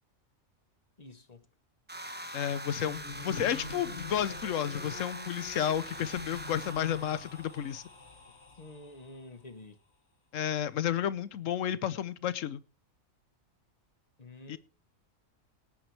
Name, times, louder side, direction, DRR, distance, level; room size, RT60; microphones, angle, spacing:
voice 1, 1.0-1.5 8.6-9.8 14.2-14.6, left 2 dB, 35° left, 1.1 m, -49 dB
sound 1, 1.9-8.0, right 1 dB, 10° right, 1.0 m, -43 dB
voice 2, 2.3-7.8 10.3-12.6 14.5-14.6, left 10 dB, 75° left, 1.1 m, -32 dB
sound 2, 2.5-9.3, left 5 dB, 55° left, 1.8 m, -46 dB
18.5 x 8.9 x 3.3 m
omnidirectional pair, 1.4 m